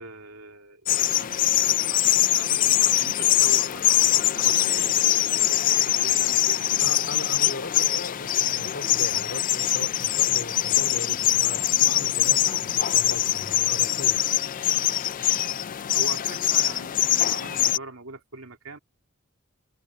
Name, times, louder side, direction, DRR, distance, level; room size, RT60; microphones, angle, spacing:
voice 1, 0.0-5.4 5.7-6.9 15.9-18.8, right 3 dB, 80° right, 3.0 m, -42 dB
sound 1, 0.9-17.8, left 13 dB, 40° left, 0.4 m, -23 dB
voice 2, 6.8-14.3, left 2 dB, 60° left, 4.0 m, -38 dB
head